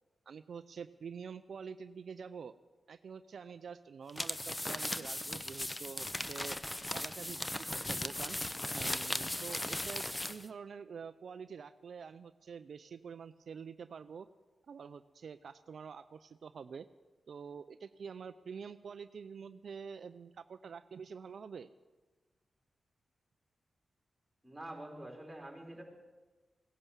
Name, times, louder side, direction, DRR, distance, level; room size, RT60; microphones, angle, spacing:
voice 1, 0.3-2.5 2.9-6.6 6.9-8.4 8.7-14.3 14.7-16.9 17.3-21.7, right 6 dB, 70° right, 11 dB, 0.4 m, -47 dB
sound 1, 4.1-10.5, left 1 dB, 15° left, 0.8 m, -38 dB
voice 2, 24.4-25.8, right 1 dB, 10° right, 1 dB, 4.2 m, -46 dB
17.0 x 11.0 x 7.2 m, 1.2 s
cardioid pair, 65°, 0 cm